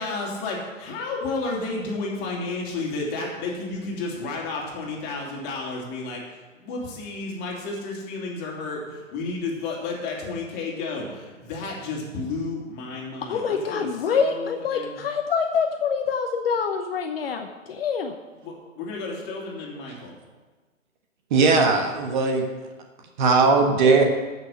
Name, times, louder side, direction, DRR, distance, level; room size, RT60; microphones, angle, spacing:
voice 1, 0.0-15.0 18.4-20.2, left 3 dB, 25° left, -2 dB, 2.7 m, -32 dB
voice 2, 13.3-18.1, left 6 dB, 45° left, 5 dB, 0.9 m, -25 dB
voice 3, 21.3-22.4 23.2-24.0, right 4 dB, 35° right, 3 dB, 1.4 m, -18 dB
14.0 x 6.2 x 6.3 m, 1.3 s
figure-of-eight pair, 125°, 40 cm